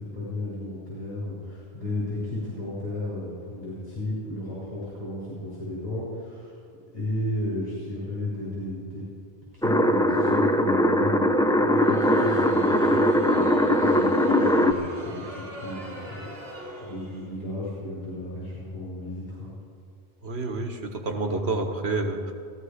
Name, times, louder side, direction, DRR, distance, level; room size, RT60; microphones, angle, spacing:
voice 1, 0.0-6.6 6.9-9.1 9.5-19.5, left 1 dB, 40° left, -9 dB, 5.3 m, -34 dB
sound 1, 9.6-14.7, left 1 dB, 5° left, 0.4 m, -21 dB
Crowd, 11.6-17.4, right 1 dB, 65° right, 2.3 m, -39 dB
voice 2, 20.2-22.3, right 3 dB, 85° right, 4 dB, 1.6 m, -28 dB
17.0 x 14.5 x 5.0 m, 2.3 s
omnidirectional pair, 1.1 m